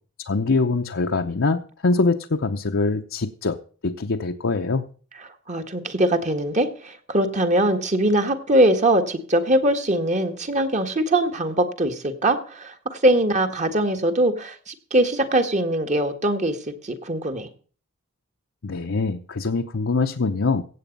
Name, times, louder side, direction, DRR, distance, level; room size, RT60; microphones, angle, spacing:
voice 1, 0.3-4.9 18.6-20.6, left 3 dB, 65° left, 2 dB, 0.8 m, -23 dB
voice 2, 5.2-17.5, right 1 dB, 35° right, 7 dB, 1.6 m, -22 dB
16.5 x 8.2 x 5.3 m, 0.41 s
head